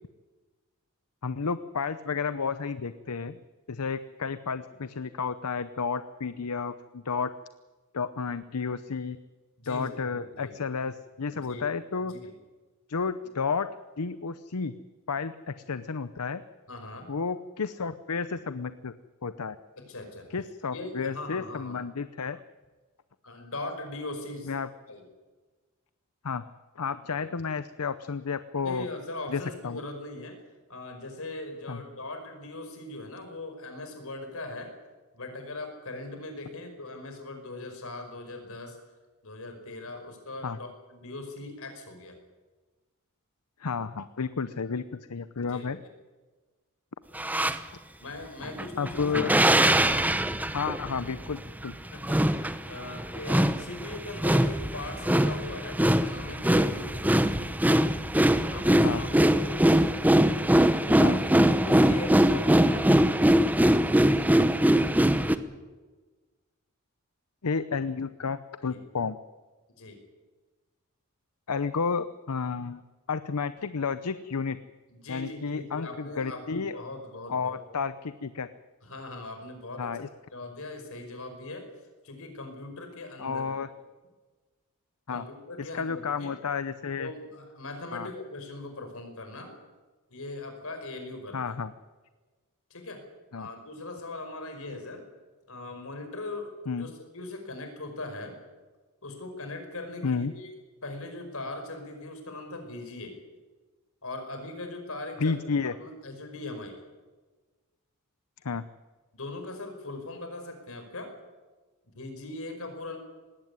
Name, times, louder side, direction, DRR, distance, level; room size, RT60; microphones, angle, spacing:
voice 1, 1.2-3.4 3.7-7.3 7.9-9.2 9.7-12.1 12.9-13.7 14.0-14.7 15.1-16.4 17.1-18.9 19.2-19.6 20.3-22.4 24.4-24.7 26.2-26.4 26.8-28.9 29.3-29.8 31.7-31.8 40.4-40.6 43.6-45.8 48.8-49.4 50.5-51.8 58.8-59.0 61.0-61.2 67.4-69.2 71.5-72.8 73.1-74.6 75.1-76.8 77.3-78.5 79.8-80.1 83.2-83.7 85.1-85.2 85.6-87.1 87.9-88.1 91.3-91.7 93.3-93.5 96.7-96.9 100.0-100.3 105.2-105.7 108.4-108.6, left 5 dB, 85° left, 13 dB, 0.7 m, -31 dB
voice 2, 9.6-10.5 11.3-11.7 12.0-12.3 16.7-17.1 19.8-20.3 20.7-21.8 23.2-24.5 24.9-25.0 27.2-27.3 28.6-30.4 30.7-34.7 35.1-38.8 39.2-42.2 45.5-45.7 48.0-49.6 51.9-57.0 58.5-59.6 61.6-63.2 68.7-68.8 69.8-70.0 74.9-77.6 78.8-80.0 80.3-81.7 82.0-83.6 85.1-86.3 87.0-89.5 90.1-91.6 92.7-93.0 93.4-95.0 95.5-98.4 99.0-100.5 100.8-103.2 104.0-105.4 105.6-106.8 109.1-111.1 112.0-113.0, left 2 dB, 65° left, 5 dB, 5.3 m, -40 dB
sound 1, 47.2-47.6 48.4-65.4, right 1 dB, 5° right, 0.9 m, -22 dB
19.5 x 17.0 x 9.8 m, 1.3 s
head